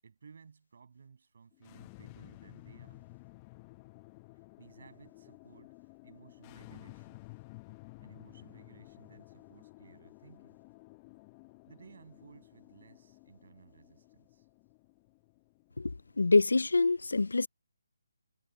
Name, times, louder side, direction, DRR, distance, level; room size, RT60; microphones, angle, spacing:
voice 1, 0.0-3.1 4.3-5.7 6.0-7.2 8.0-10.6 11.7-14.5, right 5 dB, 55° right, 7.9 m, -57 dB
sound 1, 1.5-16.8, left 25 dB, 20° left, 0.8 m, -54 dB
voice 2, 16.2-17.5, left 3 dB, 75° left, 0.5 m, -25 dB
figure-of-eight pair, 150°, 0 cm